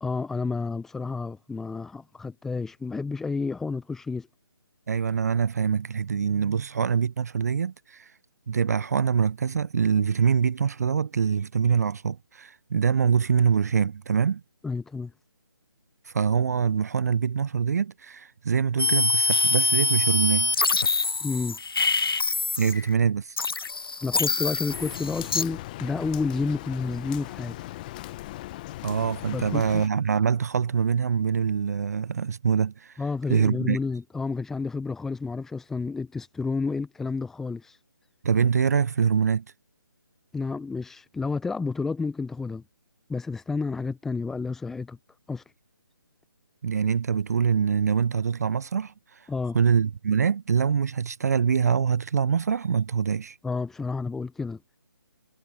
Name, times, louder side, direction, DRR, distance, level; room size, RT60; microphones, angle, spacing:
voice 1, 0.0-4.3 14.6-15.1 21.2-21.6 24.0-27.6 29.3-29.8 33.0-37.8 40.3-42.6 43.1-45.0 45.3-45.4 49.3-49.6 53.4-54.6, left 4 dB, 5° left, 0.6 m, -30 dB
voice 2, 4.9-8.1 8.5-14.4 16.0-20.6 22.6-23.4 28.8-33.0 33.3-33.8 38.2-39.4 46.6-53.4, right 6 dB, 45° right, 0.5 m, -24 dB
sound 1, 18.8-22.9 23.4-25.4, left 4 dB, 80° left, 0.4 m, -25 dB
Rain, 24.7-29.9, left 17 dB, 20° left, 1.0 m, -39 dB
figure-of-eight pair, 145°, 12 cm